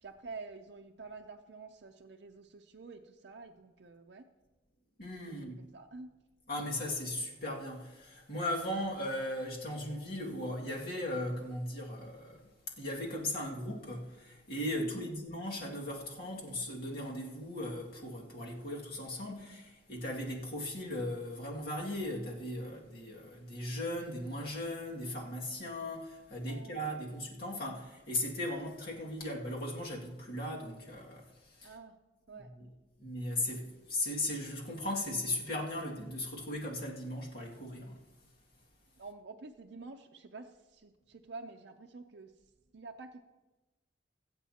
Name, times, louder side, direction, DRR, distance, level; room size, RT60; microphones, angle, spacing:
voice 1, 0.0-4.3 5.3-6.1 15.0-15.1 26.4-27.0 31.6-32.0 32.3-32.5 39.0-42.3 42.7-43.2, right 3 dB, 65° right, 0.6 m, -49 dB
voice 2, 5.0-5.6 6.5-12.5 12.8-31.2 31.6-31.7 32.3-32.7 33.0-38.0, left 1 dB, 55° left, 2.2 m, -37 dB
22.5 x 8.1 x 2.9 m
head